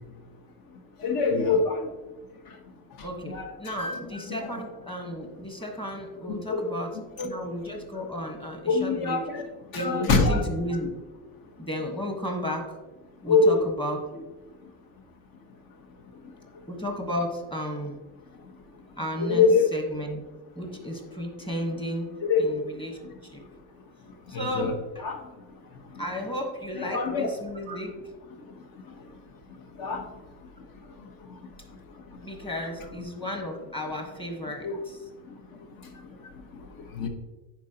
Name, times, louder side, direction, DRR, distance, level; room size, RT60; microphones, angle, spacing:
voice 1, 1.0-1.9 3.3-4.1 4.4-4.5 6.3-6.7 7.2-7.3 8.7-9.4 9.7-10.4 13.3-13.6 14.1-14.2 19.2-19.7 22.2-22.5 24.3-24.7 25.0-25.2 26.8-27.3 29.8-30.0 34.6-34.8 37.0-37.1, left 4 dB, 55° left, 5 dB, 1.2 m, -24 dB
voice 2, 3.0-9.3 9.7-10.9 11.6-12.8 13.2-14.0 16.7-18.0 19.0-20.2 20.5-22.1 22.4-23.4 24.3-25.0 26.0-27.9 32.2-35.0, equal, 10° left, 2 dB, 1.3 m, -33 dB
10.0 x 4.2 x 2.9 m, 1.2 s
cardioid pair, 110°, 43 cm